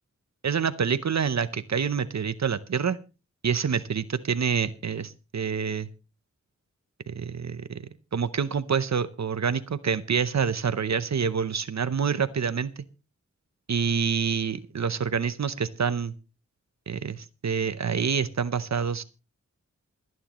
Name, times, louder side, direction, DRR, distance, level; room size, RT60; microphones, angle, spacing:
voice 1, 0.4-3.0 3.4-5.9 7.1-7.8 8.1-12.7 13.7-16.1 16.9-19.0, right 6 dB, 70° right, 13 dB, 0.8 m, -27 dB
28.0 x 9.5 x 3.0 m, 0.32 s
wide cardioid pair, 75°, 29 cm